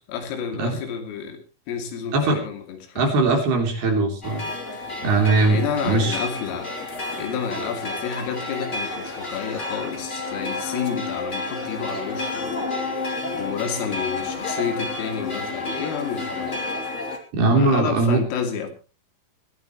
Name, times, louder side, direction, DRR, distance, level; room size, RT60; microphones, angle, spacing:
voice 1, 0.1-1.4 1.7-3.1 5.5-6.7 7.2-12.6 13.3-16.6 17.5-18.7, left 7 dB, 75° left, 5 dB, 5.3 m, -30 dB
voice 2, 3.0-4.5 5.0-6.2 17.3-18.2, right 3 dB, 55° right, 3 dB, 5.1 m, -20 dB
sound 1, 4.2-17.2, left 2 dB, 20° left, 2.1 m, -30 dB
21.5 x 14.5 x 3.1 m, 0.34 s
omnidirectional pair, 6.0 m